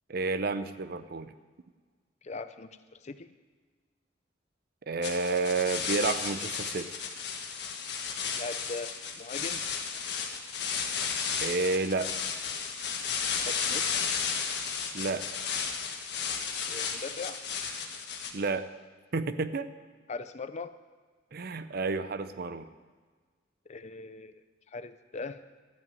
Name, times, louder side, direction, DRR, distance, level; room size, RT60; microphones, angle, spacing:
voice 1, 0.1-1.3 4.9-6.9 11.4-12.1 14.9-15.3 18.3-18.7 19.1-19.7 21.3-22.7, right 3 dB, 55° right, 12 dB, 0.6 m, -30 dB
voice 2, 2.2-3.3 8.4-9.6 13.5-13.9 16.6-17.4 20.1-20.7 23.7-24.4 24.7-25.4, left 3 dB, 40° left, 12 dB, 0.5 m, -40 dB
sound 1, 5.0-18.3, left 6 dB, 60° left, 1.4 m, -33 dB
13.5 x 6.0 x 9.2 m, 1.5 s
head